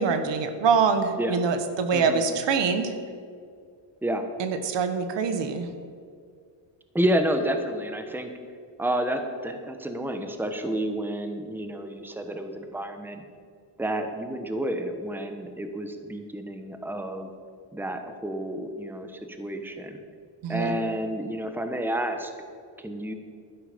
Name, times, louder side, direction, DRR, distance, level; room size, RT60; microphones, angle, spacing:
voice 1, 0.0-2.9 4.4-5.7 20.4-20.8, right 5 dB, 70° right, 8 dB, 1.3 m, -24 dB
voice 2, 1.9-2.2 4.0-4.2 6.9-8.3 8.8-13.2 13.8-17.3 17.7-20.0 20.5-22.3 22.8-23.1, right 1 dB, 5° right, 6 dB, 1.1 m, -30 dB
12.0 x 10.5 x 5.2 m, 2.1 s
cardioid pair, 100°, 46 cm